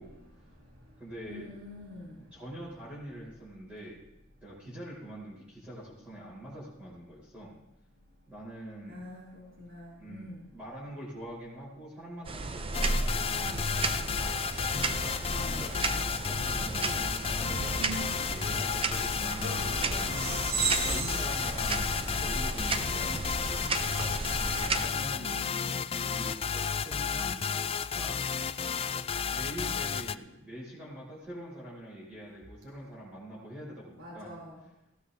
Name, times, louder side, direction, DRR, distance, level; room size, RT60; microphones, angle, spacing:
voice 1, 0.0-0.9 1.3-2.3 8.8-10.5 17.8-18.2 20.8-21.0 25.0-25.8 34.0-34.6, equal, 80° right, -5 dB, 3.2 m, -45 dB
voice 2, 1.0-1.4 2.3-4.0 4.4-7.6 8.3-9.1 10.0-14.4 15.1-20.5 20.8-25.5 26.0-27.4 27.9-28.1 29.3-34.3, equal, 5° right, -8 dB, 4.5 m, -44 dB
sound 1, 12.2-24.9, right 3 dB, 30° right, 0.6 m, -34 dB
sound 2, 12.7-30.2, left 6 dB, 30° left, 0.3 m, -32 dB
sound 3, 19.4-24.4, right 4 dB, 55° right, 2.2 m, -36 dB
18.0 x 16.0 x 2.8 m, 0.91 s
head